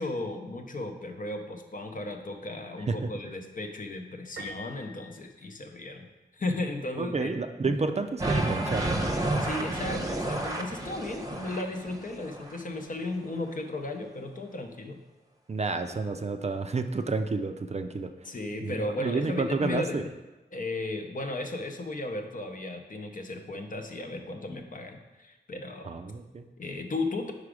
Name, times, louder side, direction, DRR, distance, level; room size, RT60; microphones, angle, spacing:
voice 1, 0.0-6.1 6.3-7.3 7.6-7.7 9.4-15.0 18.2-20.0 20.5-26.0 26.6-27.3, left 2 dB, 50° left, 4 dB, 0.7 m, -35 dB
Piano, 4.4-6.2, equal, 90° right, 0.7 m, -45 dB
voice 2, 7.0-9.0 15.5-18.1 18.6-20.0 25.9-26.5, right 3 dB, 40° right, 7 dB, 0.4 m, -30 dB
sound 1, 8.2-12.6, right 1 dB, 20° right, 0.8 m, -31 dB
4.9 x 4.7 x 4.9 m, 1.1 s
wide cardioid pair, 75°, 17 cm